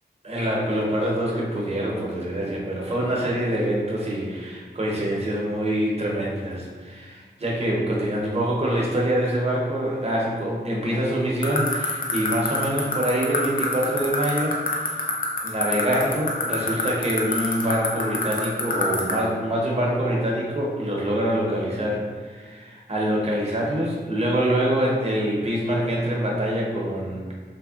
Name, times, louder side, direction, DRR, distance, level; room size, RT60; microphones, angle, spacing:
voice 1, 0.2-15.1 15.4-27.3, right 1 dB, 35° right, -3 dB, 0.7 m, -25 dB
sound 1, 11.4-19.1, left 5 dB, 50° left, 0.5 m, -23 dB
3.4 x 2.1 x 2.4 m, 1.5 s
wide cardioid pair, 75°, 18 cm